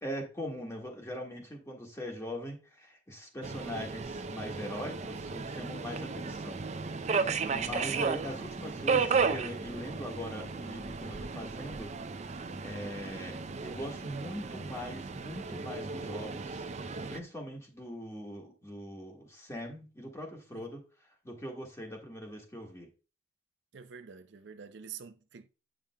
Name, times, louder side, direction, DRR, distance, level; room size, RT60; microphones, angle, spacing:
voice 1, 0.0-6.6 7.0-7.2 7.5-11.9 12.6-16.6 17.1-20.8 21.2-22.9, equal, 15° left, 1.5 m, -41 dB
Subway metro underground, 3.4-17.2, right 5 dB, 40° right, 0.5 m, -34 dB
voice 2, 23.7-25.5, right 7 dB, 85° right, 0.6 m, -47 dB
8.8 x 5.1 x 2.2 m
head